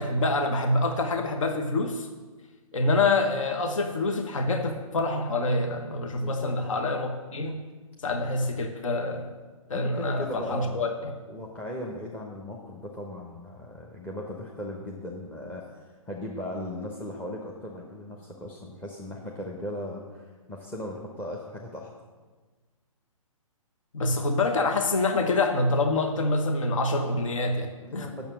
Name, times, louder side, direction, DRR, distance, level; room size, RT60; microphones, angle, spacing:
voice 1, 0.0-2.1 2.7-7.6 8.0-9.3 9.7-11.1 23.9-28.1, left 2 dB, 65° left, 5 dB, 1.0 m, -26 dB
voice 2, 6.1-6.5 9.7-10.9 11.3-21.9 27.8-28.3, left 1 dB, 10° left, -1 dB, 0.9 m, -38 dB
8.7 x 6.9 x 6.3 m, 1.4 s
figure-of-eight pair, 130°, 18 cm